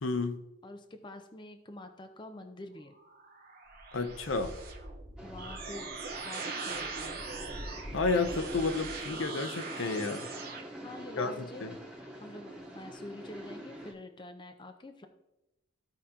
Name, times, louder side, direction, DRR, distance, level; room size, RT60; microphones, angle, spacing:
voice 1, 0.0-0.4 3.9-4.5 7.9-10.3 11.2-11.3 11.6-11.7, left 3 dB, 70° left, 8 dB, 0.7 m, -31 dB
voice 2, 0.6-3.0 5.2-5.9 6.2-7.2 10.8-11.7 12.2-15.1, left 1 dB, 20° left, 5 dB, 0.5 m, -46 dB
sound 1, 2.9-10.6, right 3 dB, 45° right, 1.0 m, -41 dB
sound 2, 5.2-13.9, equal, 5° right, 1.1 m, -46 dB
14.5 x 4.9 x 2.9 m, 0.91 s
head